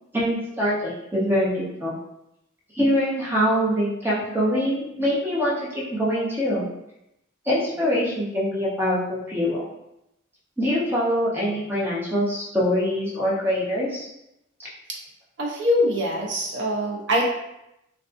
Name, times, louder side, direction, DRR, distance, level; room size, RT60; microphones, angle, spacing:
voice 1, 0.1-1.9 2.7-6.7 7.5-9.7 10.6-14.1, equal, 10° right, -7 dB, 0.6 m, -24 dB
voice 2, 15.4-17.3, equal, 65° right, -1 dB, 0.5 m, -23 dB
2.4 x 2.3 x 2.4 m, 0.85 s
head